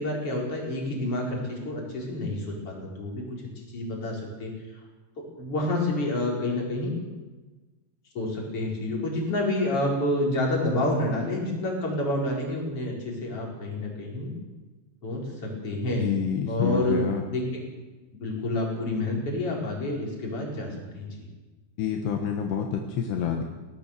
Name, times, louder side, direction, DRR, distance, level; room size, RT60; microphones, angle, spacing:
voice 1, 0.0-3.2 3.7-4.5 5.4-6.9 8.1-14.3 15.0-16.1 16.5-17.0 17.3-17.6 18.2-21.1, left 1 dB, 30° left, -2 dB, 5.7 m, -28 dB
voice 2, 16.0-17.2 21.8-23.4, left 7 dB, 75° left, 3 dB, 3.5 m, -28 dB
22.0 x 18.0 x 6.8 m, 1.2 s
omnidirectional pair, 5.0 m